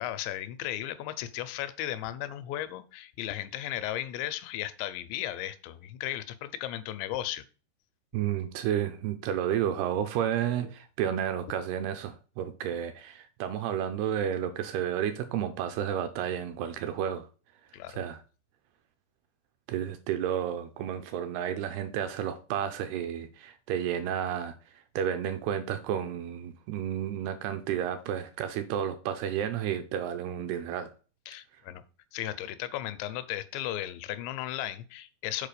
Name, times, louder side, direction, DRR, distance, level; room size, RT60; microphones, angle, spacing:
voice 1, 0.0-7.4 17.7-18.0 31.3-31.8 32.1-35.5, left 13 dB, 85° left, 2.9 m, -35 dB
voice 2, 8.1-17.3 17.9-18.2 19.7-30.9, right 9 dB, 80° right, 2.5 m, -31 dB
7.5 x 4.6 x 6.7 m
omnidirectional pair, 5.1 m